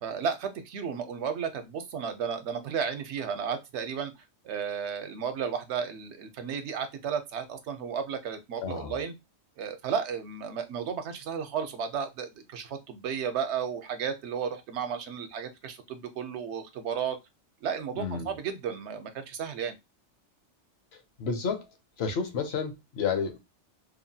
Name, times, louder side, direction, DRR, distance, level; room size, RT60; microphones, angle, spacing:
voice 1, 0.0-4.1 4.4-9.1 9.6-17.2 17.6-19.8, right 7 dB, 75° right, 0.9 m, -33 dB
voice 2, 8.6-9.0 17.9-18.3 20.9-21.7 22.0-23.4, left 5 dB, 65° left, 0.9 m, -31 dB
2.9 x 2.1 x 2.6 m
omnidirectional pair, 1.2 m